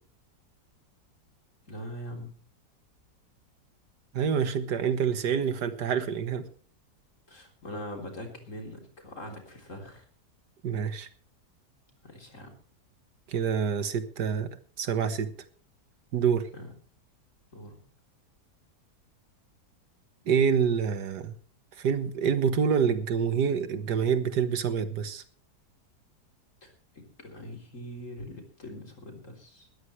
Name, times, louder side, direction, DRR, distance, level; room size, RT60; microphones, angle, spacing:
voice 1, 1.7-2.4 7.3-10.0 12.0-12.5 16.5-16.7 17.5-17.8 26.6-29.7, equal, 50° left, 3 dB, 4.0 m, -42 dB
voice 2, 4.1-6.5 10.6-11.1 13.3-15.3 16.1-16.5 20.3-21.3 21.8-25.2, right 7 dB, 80° right, 11 dB, 1.9 m, -27 dB
19.5 x 14.0 x 3.2 m, 0.42 s
omnidirectional pair, 1.8 m